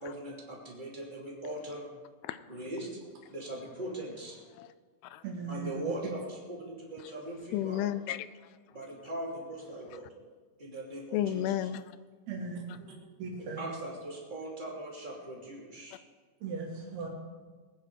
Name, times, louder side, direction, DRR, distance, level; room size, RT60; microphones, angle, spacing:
voice 1, 0.0-1.9 2.5-2.9 3.3-4.4 5.5-7.8 8.7-10.1 10.6-11.4 12.9-13.0 13.6-16.0, right 1 dB, 15° right, -3 dB, 2.6 m, -40 dB
voice 2, 5.2-5.9 12.3-12.6 13.2-13.7 16.4-17.1, right 4 dB, 85° right, -1 dB, 4.2 m, -38 dB
voice 3, 7.5-8.5 11.1-11.9 15.9-16.0, left 11 dB, 85° left, 14 dB, 2.4 m, -33 dB
21.5 x 9.6 x 4.9 m, 1.5 s
omnidirectional pair, 4.3 m